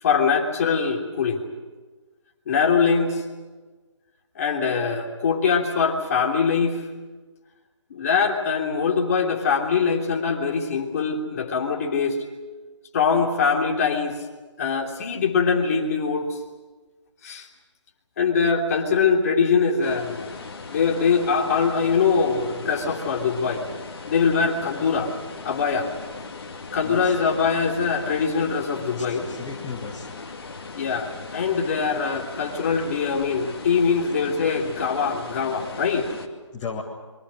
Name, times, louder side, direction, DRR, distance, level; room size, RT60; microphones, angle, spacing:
voice 1, 0.0-1.5 2.5-3.2 4.3-6.8 7.9-12.2 12.9-14.2 14.6-16.4 17.2-17.5 18.2-20.3 20.7-23.6 24.1-25.1 25.4-25.9 26.7-29.2 30.8-36.1, left 5 dB, 30° left, 1 dB, 3.2 m, -23 dB
sound 1, 19.8-36.3, left 4 dB, 50° left, 2.5 m, -39 dB
voice 2, 26.8-27.2 29.0-30.1 36.5-36.8, left 5 dB, 15° left, -4 dB, 1.8 m, -35 dB
28.0 x 23.5 x 6.5 m, 1.3 s
figure-of-eight pair, 160°, 16 cm